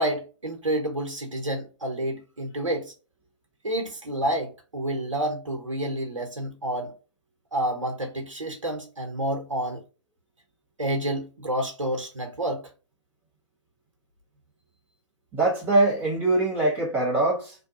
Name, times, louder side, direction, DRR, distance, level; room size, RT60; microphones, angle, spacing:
voice 1, 0.0-2.9 3.6-6.9 7.5-9.8 10.8-12.6, right 1 dB, 80° right, 0.8 m, -29 dB
voice 2, 15.3-17.5, right 2 dB, 10° right, 1.2 m, -23 dB
2.6 x 2.2 x 2.7 m
figure-of-eight pair, 130°, 16 cm